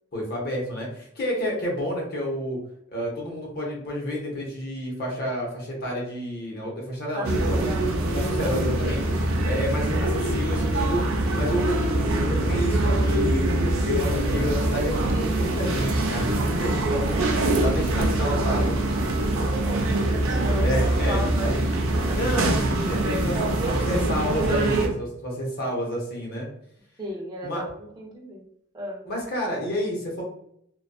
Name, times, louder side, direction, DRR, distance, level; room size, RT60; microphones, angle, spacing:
voice 1, 0.1-2.6 2.9-7.3 8.1-9.1 9.4-11.0 11.3-17.2 17.6-18.8 20.6-21.2 22.1-23.4 23.7-26.5 27.4-27.6 29.1-30.2, equal, 50° left, -2 dB, 0.8 m, -30 dB
sound 1, 7.2-24.9, right 1 dB, 90° right, 0.5 m, -24 dB
voice 2, 7.6-8.1 17.6-17.9 19.1-21.6 21.9-22.2 22.5-22.9 23.3-24.2 24.5-24.6 27.0-28.5 28.7-29.0, right 1 dB, 20° right, -2 dB, 0.4 m, -35 dB
2.5 x 2.2 x 2.3 m, 0.73 s
head